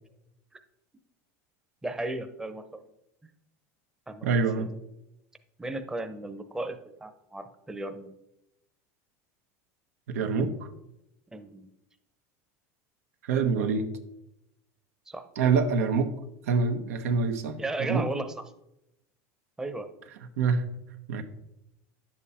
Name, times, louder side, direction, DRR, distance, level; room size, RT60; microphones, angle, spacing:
voice 1, 1.8-2.8 4.1-4.7 5.6-8.1 11.3-11.7 15.1-15.3 17.6-18.4 19.6-19.9, right 2 dB, 5° right, 7 dB, 0.8 m, -35 dB
voice 2, 4.2-4.7 10.1-10.7 13.2-13.9 15.4-16.1 16.5-18.1 20.4-20.6 21.1-21.2, right 5 dB, 90° right, 6 dB, 1.2 m, -26 dB
10.5 x 7.6 x 4.3 m, 0.85 s
supercardioid pair, 130°, 8 cm